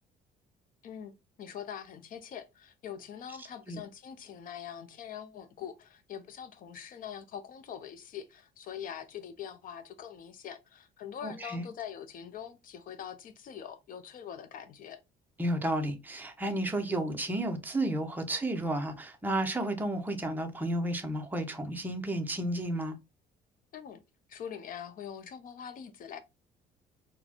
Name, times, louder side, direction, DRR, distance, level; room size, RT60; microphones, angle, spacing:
voice 1, 0.8-1.1 1.4-15.0 23.7-24.0 24.3-26.2, left 8 dB, 55° left, 0.6 m, -43 dB
voice 2, 3.4-3.8 11.2-11.6 15.4-23.0, right 1 dB, 10° right, 0.7 m, -32 dB
4.0 x 2.2 x 2.9 m
cardioid pair, 110°, 17 cm